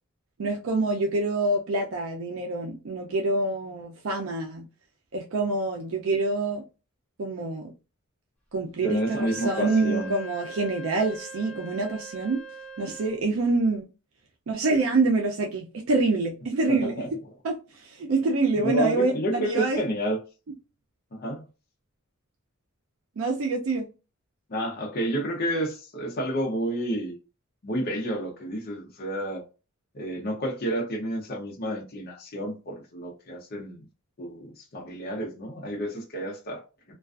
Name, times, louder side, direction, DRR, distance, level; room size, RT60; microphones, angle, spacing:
voice 1, 0.4-4.7 5.1-6.6 7.2-7.7 8.5-12.4 12.8-13.9 14.5-17.0 17.4-19.8 23.2-23.9, right 3 dB, 70° right, 0.4 m, -26 dB
Wind instrument woodwind instrument, 8.7-13.2, right 2 dB, 5° left, 0.6 m, -41 dB
voice 2, 8.8-10.2 16.7-17.1 18.6-20.2 21.1-21.4 24.5-27.2 27.6-29.5 29.9-33.8 34.2-36.6, equal, 45° left, 0.6 m, -30 dB
2.4 x 2.3 x 2.3 m
head